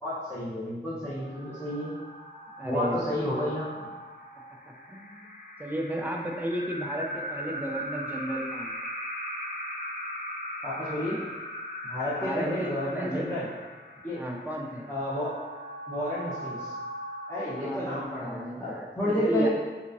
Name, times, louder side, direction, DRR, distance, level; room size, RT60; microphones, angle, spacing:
voice 1, 0.0-1.9 2.6-3.7 10.6-11.2 11.9-13.5 14.0-14.2 14.9-15.4 15.9-16.7 17.3-19.5, left 1 dB, 10° left, -13 dB, 0.9 m, -31 dB
sound 1, 1.0-18.4, equal, 50° left, 0.5 m, -39 dB
voice 2, 2.6-3.3 4.7-8.9 12.2-13.3 14.2-14.9 17.6-19.5, right 1 dB, 10° right, 0 dB, 0.4 m, -34 dB
3.4 x 2.8 x 2.6 m, 1.3 s
wide cardioid pair, 80°, 19 cm